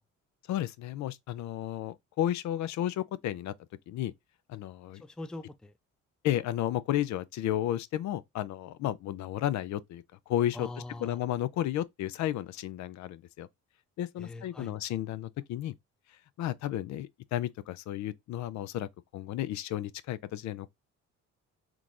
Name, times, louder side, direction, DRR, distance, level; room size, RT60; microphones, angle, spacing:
voice 1, 0.5-3.5 3.9-4.1 4.5-5.0 6.2-10.7 11.0-13.5 14.0-15.7 16.4-18.9 19.1-20.7, left 12 dB, 70° left, 0.4 m, -33 dB
voice 2, 4.9-5.7 10.5-11.2 14.2-14.8, left 2 dB, 5° left, 0.3 m, -42 dB
3.7 x 3.0 x 2.5 m
cardioid pair, 95°, 30 cm